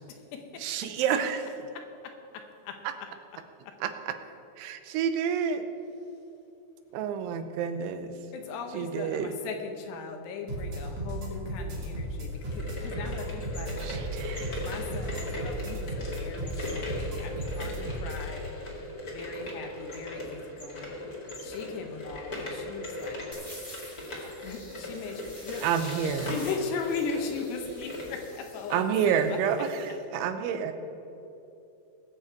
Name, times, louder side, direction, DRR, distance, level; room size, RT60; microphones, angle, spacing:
voice 1, 0.0-1.0 1.7-3.1 3.7-3.8 8.3-13.8 14.6-18.5 19.1-20.9 21.4-23.3 24.4-29.4, left 5 dB, 75° left, 4 dB, 2.9 m, -38 dB
voice 2, 0.6-1.4 2.8-2.9 3.8-4.1 4.6-5.6 6.9-8.1 8.7-9.3 13.8-14.6 25.6-26.4 28.7-30.7, right 7 dB, 90° right, 8 dB, 3.2 m, -29 dB
sound 1, 10.5-18.2, right 1 dB, 45° right, 2.3 m, -35 dB
sound 2, 12.3-28.2, left 1 dB, 45° left, 1.2 m, -38 dB
sound 3, 23.3-29.9, left 1 dB, 15° left, 1.3 m, -49 dB
20.5 x 7.4 x 4.6 m, 2.9 s
omnidirectional pair, 5.2 m